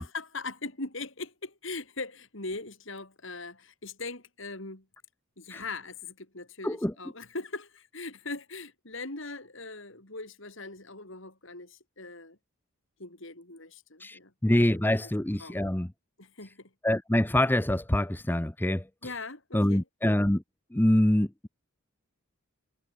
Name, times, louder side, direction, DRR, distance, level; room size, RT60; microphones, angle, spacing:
voice 1, 0.0-4.9 5.4-12.4 13.0-14.3 15.0-15.1 15.4-15.6 16.2-16.7 19.0-19.8, left 3 dB, 60° left, 3.6 m, -40 dB
voice 2, 6.6-6.9 14.0-15.9 16.8-19.1 19.5-20.4 20.7-21.5, left 1 dB, 10° left, 0.7 m, -25 dB
head